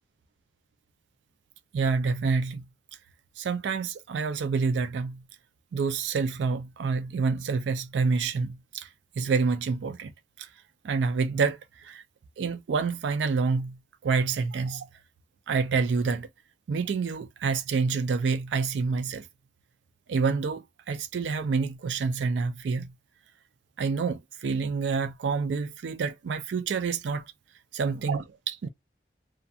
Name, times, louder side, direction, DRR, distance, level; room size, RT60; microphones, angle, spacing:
voice 1, 1.7-2.6 3.4-5.2 5.7-10.1 10.4-10.5 10.8-12.0 12.4-13.8 14.0-14.9 15.5-16.3 16.7-19.3 20.1-22.9 23.8-27.3 27.7-28.7, right 4 dB, 90° right, 0.4 m, -28 dB
2.4 x 2.2 x 2.6 m
head